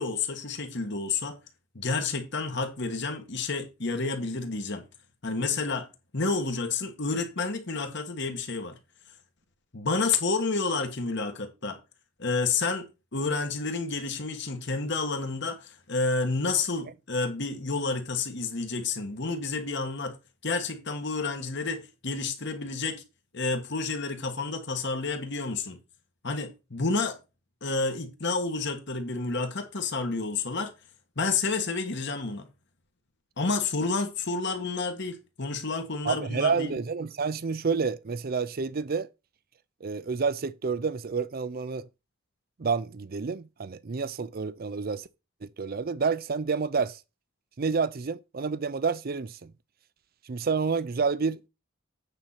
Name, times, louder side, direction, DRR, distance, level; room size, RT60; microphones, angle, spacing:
voice 1, 0.0-1.4 1.7-4.8 5.2-5.9 6.1-8.8 9.7-11.8 12.2-20.2 20.4-23.0 23.3-25.8 26.2-27.2 27.6-30.7 31.2-32.5 33.4-36.8, left 4 dB, 55° left, 1.5 m, -30 dB
voice 2, 36.0-39.1 39.8-41.9 42.6-45.1 45.4-47.0 47.6-49.5 50.3-51.5, right 5 dB, 45° right, 0.5 m, -29 dB
8.9 x 4.2 x 5.7 m
head